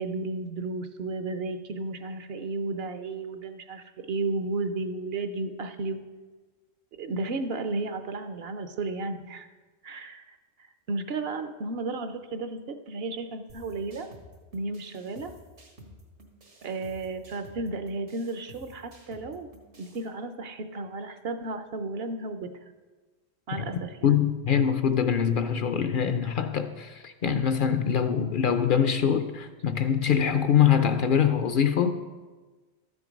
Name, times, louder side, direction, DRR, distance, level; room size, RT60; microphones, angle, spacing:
voice 1, 0.0-6.0 7.0-9.5 9.8-10.4 10.9-14.1 14.5-15.3 16.6-19.5 19.8-22.5 23.5-24.1, right 3 dB, 65° right, 9 dB, 0.9 m, -33 dB
sound 1, 13.5-20.1, equal, 80° right, 2.0 m, -52 dB
voice 2, 24.0-31.9, left 8 dB, 60° left, 9 dB, 0.6 m, -24 dB
13.0 x 6.1 x 5.1 m, 1.3 s
omnidirectional pair, 1.1 m